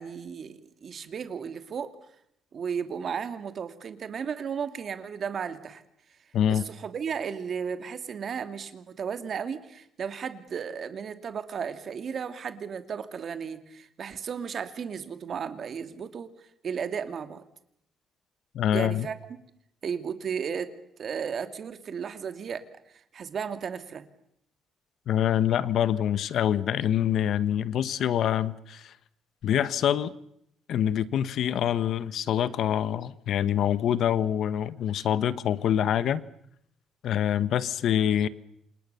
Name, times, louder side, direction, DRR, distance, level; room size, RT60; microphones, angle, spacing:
voice 1, 0.0-1.9 2.5-5.8 6.5-16.3 16.6-17.4 18.7-19.2 19.8-20.7 21.0-22.6 23.1-24.1, right 7 dB, 40° right, 2.6 m, -34 dB
voice 2, 6.3-6.7 18.5-19.1 25.1-28.9 29.4-30.1 30.7-36.2 37.0-38.3, left 10 dB, 60° left, 1.3 m, -25 dB
29.0 x 27.5 x 7.0 m
cardioid pair, 160°, 0 cm